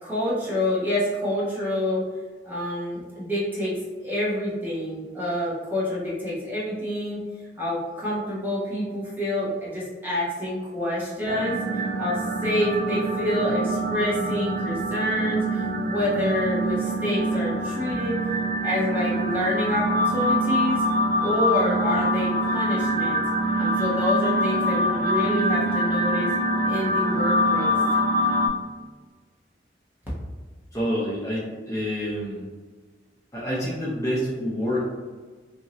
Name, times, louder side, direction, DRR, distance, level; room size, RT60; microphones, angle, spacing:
voice 1, 0.0-2.0 2.4-7.2 7.6-18.2 18.6-20.8 21.2-23.2 23.6-26.3 26.7-27.8, left 1 dB, 10° right, -8 dB, 0.8 m, -27 dB
sound 1, 11.3-28.5, equal, 50° right, 0.3 m, -24 dB
voice 2, 30.7-32.4 33.3-34.8, equal, 15° left, -8 dB, 0.6 m, -27 dB
2.8 x 2.7 x 2.9 m, 1.4 s
head